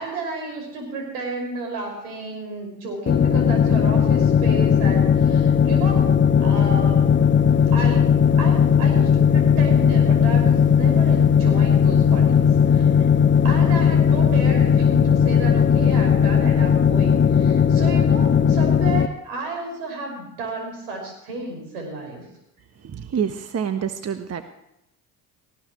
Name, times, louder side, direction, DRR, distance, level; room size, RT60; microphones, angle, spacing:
voice 1, 0.0-6.1 6.4-7.1 7.7-13.1 13.4-22.3, right 3 dB, 80° right, 2 dB, 5.8 m, -32 dB
sound 1, 3.1-19.1, left 7 dB, 25° left, 0.8 m, -17 dB
voice 2, 22.8-24.4, right 7 dB, 35° right, 8 dB, 1.2 m, -27 dB
19.0 x 16.0 x 3.1 m, 0.85 s
hypercardioid pair, 65°, 44 cm